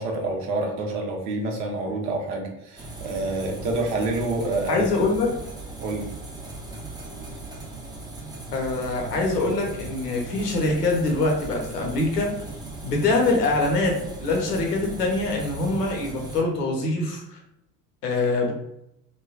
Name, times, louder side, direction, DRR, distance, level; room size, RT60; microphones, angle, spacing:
voice 1, 0.0-4.9 5.8-6.1, right 2 dB, 70° right, 1 dB, 0.9 m, -27 dB
sound 1, 2.8-16.4, right 2 dB, 10° right, 0.6 m, -38 dB
voice 2, 4.7-5.4 8.5-12.3 12.8-17.4 18.0-18.5, left 2 dB, 90° left, 1 dB, 0.7 m, -24 dB
3.2 x 2.1 x 2.3 m, 0.80 s
hypercardioid pair, 60°, 47 cm